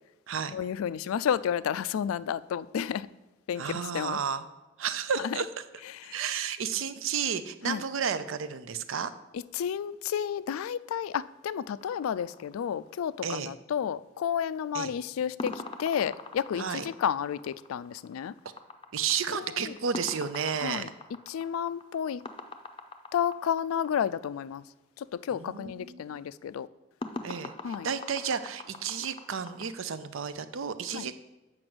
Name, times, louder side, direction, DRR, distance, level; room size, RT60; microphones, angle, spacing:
voice 1, 0.5-3.1 3.5-4.2 6.1-6.2 7.6-7.8 9.5-15.5 15.8-18.3 19.3-19.7 20.6-20.9 21.3-22.2 23.1-24.6 25.1-26.7 27.6-27.9 30.9-31.1, left 8 dB, 85° left, 0.3 m, -31 dB
voice 2, 3.6-4.4 4.8-5.6 6.1-9.1 13.2-13.5 14.7-14.9 16.5-16.9 18.9-20.9 25.3-26.2 27.2-31.2, right 6 dB, 70° right, 0.5 m, -32 dB
sound 1, 11.8-13.2 15.4-24.0 27.0-29.7, left 3 dB, 25° left, 0.5 m, -42 dB
7.8 x 5.9 x 6.1 m
head